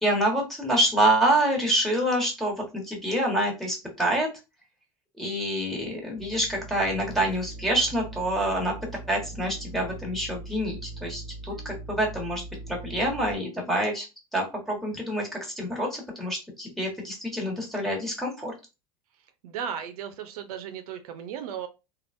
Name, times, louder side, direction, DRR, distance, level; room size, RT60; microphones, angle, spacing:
voice 1, 0.0-4.3 5.2-8.7 9.1-14.1 14.3-18.5, right 1 dB, ahead, 1.3 m, -27 dB
sound 1, 6.2-13.4, right 3 dB, 35° right, 1.2 m, -41 dB
voice 2, 19.4-21.7, right 8 dB, 85° right, 0.5 m, -35 dB
3.3 x 2.3 x 2.5 m
supercardioid pair, 110°, 19 cm